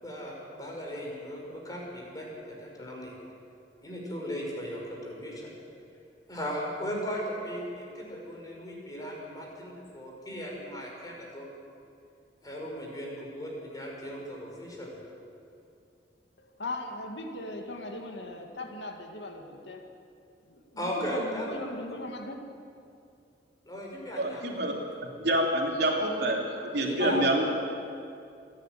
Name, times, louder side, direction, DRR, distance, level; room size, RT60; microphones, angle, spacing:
voice 1, 0.0-3.1 3.8-5.5 6.3-11.5 12.4-14.9 20.8-21.5 23.7-24.8 26.8-27.2, equal, 20° left, -2 dB, 5.4 m, -37 dB
voice 2, 16.6-19.9 20.5-22.4 26.5-27.3, left 2 dB, 90° left, 3 dB, 2.2 m, -38 dB
voice 3, 24.2-24.7 25.2-26.4 26.7-27.5, right 1 dB, 65° right, 0 dB, 3.1 m, -26 dB
27.5 x 10.5 x 9.3 m, 2.5 s
head